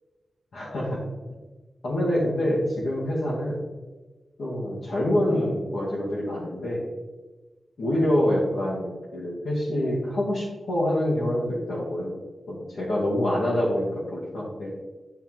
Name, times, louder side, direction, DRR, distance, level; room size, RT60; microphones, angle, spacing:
voice 1, 0.5-1.0 1.8-3.6 4.4-6.9 7.8-12.2 12.5-14.8, left 1 dB, 60° left, -8 dB, 1.9 m, -26 dB
9.8 x 4.4 x 3.7 m, 1.2 s
wide cardioid pair, 165°, 0 cm